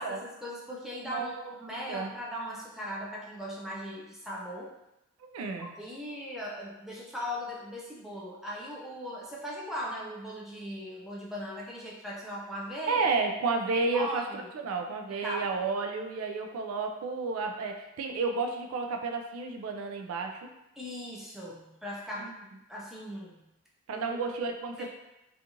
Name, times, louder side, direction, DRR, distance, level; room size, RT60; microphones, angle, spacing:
voice 1, 0.0-1.3 1.6-4.7 5.6-13.1 13.9-14.5 15.2-15.5 20.8-22.3 22.7-23.4 23.9-24.2 24.8-24.9, equal, ahead, -5 dB, 0.3 m, -38 dB
voice 2, 1.0-1.5 1.9-2.1 5.3-5.7 12.9-14.2 14.5-20.5 22.3-22.4 23.9-24.9, right 4 dB, 90° right, 4 dB, 0.3 m, -31 dB
2.8 x 2.4 x 2.5 m, 0.92 s
head